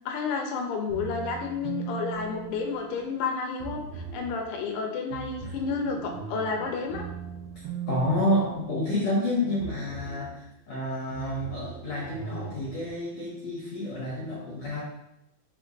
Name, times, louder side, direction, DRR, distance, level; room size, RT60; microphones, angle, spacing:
voice 1, 0.1-7.0, left 5 dB, 85° left, 2 dB, 2.2 m, -31 dB
sound 1, 0.9-3.1 3.6-4.4 5.1-9.2 9.6-10.4 11.1-12.9, right 6 dB, 85° right, 1.3 m, -39 dB
voice 2, 7.9-14.8, left 1 dB, 65° left, -6 dB, 1.4 m, -29 dB
4.5 x 3.7 x 2.4 m, 0.85 s
omnidirectional pair, 3.7 m